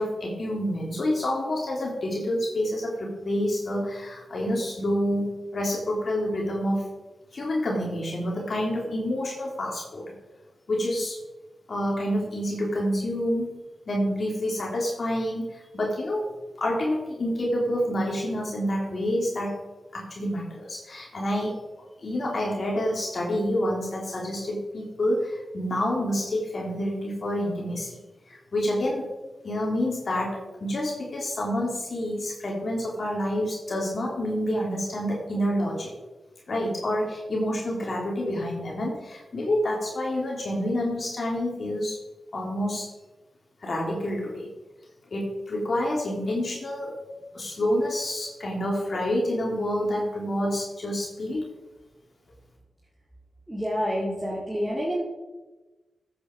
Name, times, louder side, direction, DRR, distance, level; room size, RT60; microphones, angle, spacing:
voice 1, 0.0-6.9 7.3-10.0 10.7-11.2 11.7-13.6 13.9-16.2 16.6-19.6 19.9-28.0 28.3-29.1 29.4-35.9 36.5-42.0 42.3-42.9 43.6-44.5 45.1-46.9 47.3-51.5, left 1 dB, 60° left, -2 dB, 3.5 m, -28 dB
voice 2, 53.5-55.0, equal, 15° right, -5 dB, 3.3 m, -28 dB
15.0 x 8.6 x 4.7 m, 1.2 s
supercardioid pair, 40°, 0 cm